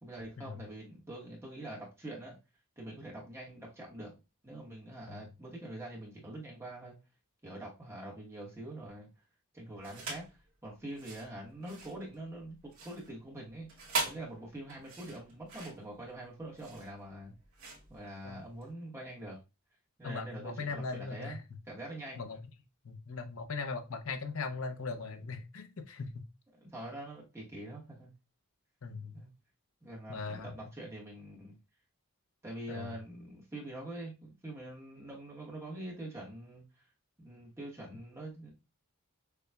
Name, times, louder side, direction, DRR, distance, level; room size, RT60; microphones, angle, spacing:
voice 1, 0.0-2.3 2.8-4.1 4.4-7.0 7.4-9.1 9.5-12.6 12.8-17.3 17.9-19.4 20.0-22.3 26.6-28.1 29.1-29.3 29.8-31.6 32.4-36.6 37.2-38.5, right 1 dB, 10° right, -4 dB, 1.1 m, -45 dB
sound 1, 9.8-10.3 10.9-18.7, right 3 dB, 70° right, 2.1 m, -41 dB
voice 2, 20.0-21.4 22.2-22.4 22.8-26.2 28.8-29.2 30.1-30.5 32.7-33.0, left 4 dB, 65° left, 7 dB, 0.7 m, -39 dB
6.8 x 2.3 x 2.3 m, 0.27 s
head